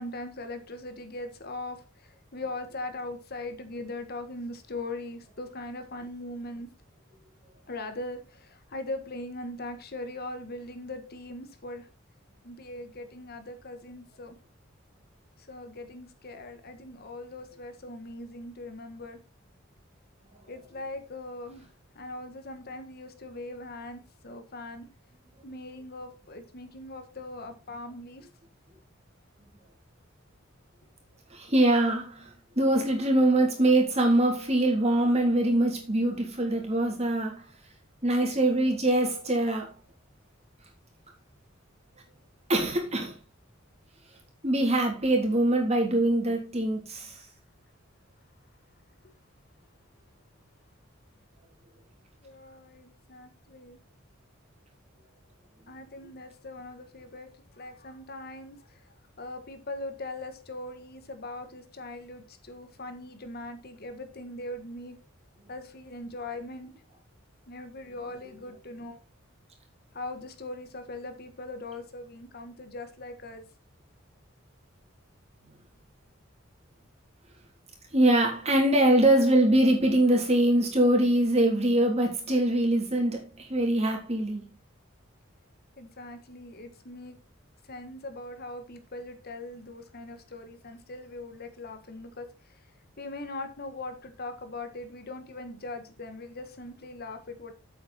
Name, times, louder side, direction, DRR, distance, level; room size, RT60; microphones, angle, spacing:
voice 1, 0.0-6.7 7.7-11.9 12.4-14.3 15.4-19.2 20.5-21.7 21.9-24.9 25.4-28.3 52.2-53.8 55.7-65.0 65.5-66.7 67.5-69.0 69.9-73.4 85.8-87.2 87.6-92.7 93.0-97.5, left 2 dB, 50° left, 1.5 m, -40 dB
voice 2, 31.3-32.3 32.5-37.4 38.0-39.7 42.5-43.2 44.4-47.2 77.9-84.5, right 1 dB, 35° right, 3.4 m, -23 dB
8.6 x 8.1 x 4.3 m
head